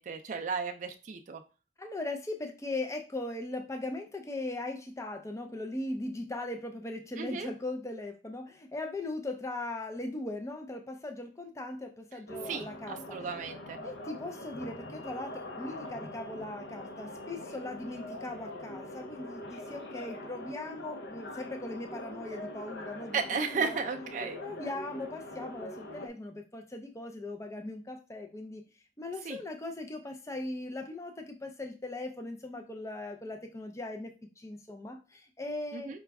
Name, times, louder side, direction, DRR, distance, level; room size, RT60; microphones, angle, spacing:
voice 1, 0.0-1.4 7.2-7.5 12.4-13.8 23.1-24.4 29.2-29.4 35.7-36.0, right 5 dB, 45° right, 4 dB, 0.4 m, -34 dB
voice 2, 1.8-13.0 13.8-23.2 23.5-23.8 24.4-28.6 29.0-36.0, left 2 dB, 15° left, 4 dB, 0.4 m, -39 dB
sound 1, 12.3-26.1, left 1 dB, 85° left, 0.8 m, -43 dB
5.0 x 2.3 x 3.4 m, 0.33 s
head